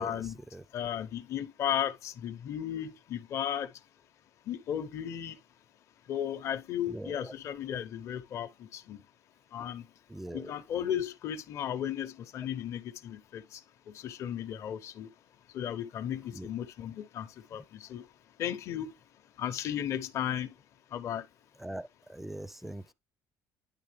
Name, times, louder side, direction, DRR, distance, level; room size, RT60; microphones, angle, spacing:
voice 1, 0.0-0.3 0.7-3.8 4.4-5.4 6.1-9.0 9.5-9.9 10.3-15.1 15.5-18.1 18.4-19.0 19.4-20.6 20.9-21.3, left 10 dB, 50° left, 0.7 m, -35 dB
voice 2, 6.9-7.3 10.1-10.5 16.3-16.5 21.6-22.9, right 1 dB, 5° right, 0.3 m, -41 dB
9.9 x 3.3 x 3.4 m
cardioid pair, 145°, 6 cm